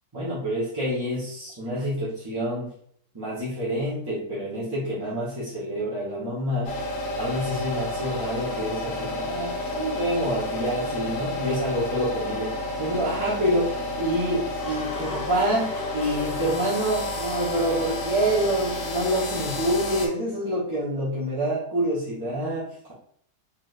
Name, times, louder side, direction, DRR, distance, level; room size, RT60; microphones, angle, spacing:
voice 1, 0.1-2.7 3.1-6.8 7.2-22.9, equal, 15° right, -10 dB, 0.9 m, -27 dB
sound 1, 6.6-20.1, left 1 dB, 80° left, 1.5 m, -30 dB
4.2 x 3.3 x 2.5 m, 0.63 s
omnidirectional pair, 1.9 m